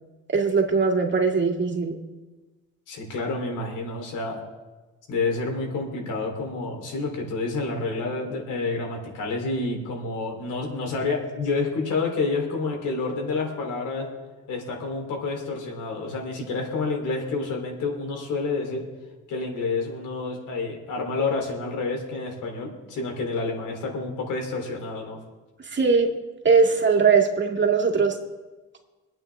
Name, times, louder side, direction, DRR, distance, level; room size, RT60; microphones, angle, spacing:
voice 1, 0.3-2.0 25.7-26.2 26.4-28.2, right 5 dB, 40° right, 2 dB, 2.2 m, -20 dB
voice 2, 2.9-4.4 5.1-14.1 14.5-18.8 19.3-25.2, left 3 dB, 85° left, 2 dB, 3.5 m, -29 dB
25.5 x 8.9 x 3.5 m, 1.2 s
cardioid pair, 90°, 30 cm